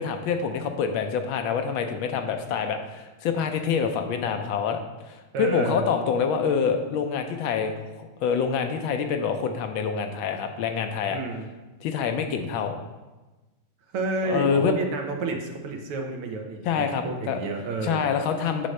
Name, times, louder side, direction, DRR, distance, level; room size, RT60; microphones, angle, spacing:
voice 1, 0.0-4.8 5.1-11.2 11.8-12.7 14.2-14.7 16.6-17.4 17.8-18.7, left 6 dB, 75° left, 6 dB, 1.4 m, -26 dB
voice 2, 5.3-5.8 11.1-11.5 13.9-18.1, right 3 dB, 85° right, 3 dB, 1.8 m, -30 dB
7.7 x 6.3 x 3.2 m, 1.2 s
omnidirectional pair, 2.3 m